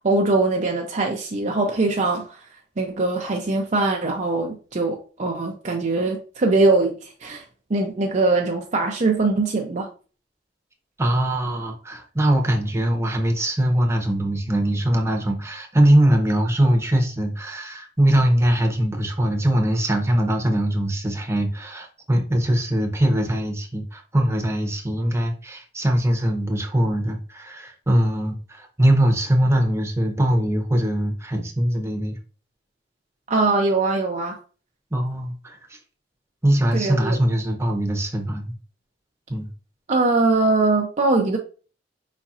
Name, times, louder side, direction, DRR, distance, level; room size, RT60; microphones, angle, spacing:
voice 1, 0.0-2.3 2.8-7.4 7.7-9.9 33.3-34.4 36.7-37.2 39.9-41.4, right 3 dB, 40° right, 0.6 m, -22 dB
voice 2, 11.0-32.2 34.9-35.8 36.4-38.5 39.3-39.5, right 1 dB, 15° right, 0.9 m, -21 dB
5.0 x 4.1 x 2.4 m
head